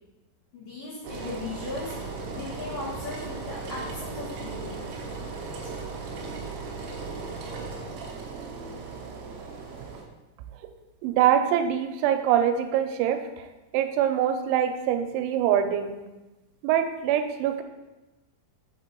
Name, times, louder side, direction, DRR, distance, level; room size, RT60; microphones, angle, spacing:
voice 1, 0.5-4.8, left 3 dB, 70° left, -7 dB, 2.1 m, -37 dB
Engine, 1.0-10.0, right 4 dB, 75° right, 2.5 m, -37 dB
voice 2, 11.0-13.5 13.7-15.9 16.6-17.6, right 10 dB, 90° right, 8 dB, 3.0 m, -24 dB
7.5 x 4.5 x 4.4 m, 1.1 s
omnidirectional pair, 5.3 m